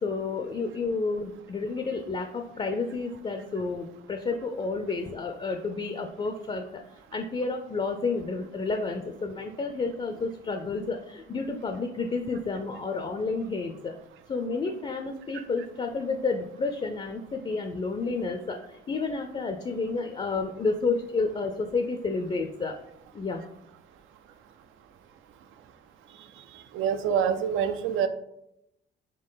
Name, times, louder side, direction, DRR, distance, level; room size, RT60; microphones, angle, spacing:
voice 1, 0.0-6.8 7.1-13.9 14.3-22.8 23.1-23.5, left 4 dB, 30° left, 5 dB, 0.4 m, -30 dB
voice 2, 26.7-28.1, right 8 dB, 80° right, 9 dB, 0.5 m, -25 dB
4.5 x 2.8 x 3.8 m, 0.80 s
cardioid pair, 90°, 20 cm